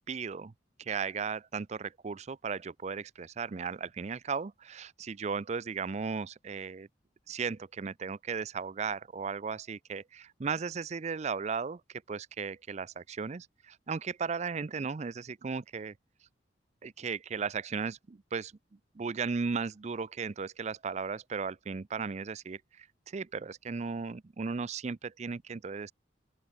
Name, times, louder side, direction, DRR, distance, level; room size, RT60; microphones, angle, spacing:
voice 1, 0.1-0.5 0.8-6.9 7.3-11.8 12.1-15.9 16.8-18.5 19.0-22.9 23.1-25.9, right 5 dB, 40° right, 0.5 m, -36 dB
open air
head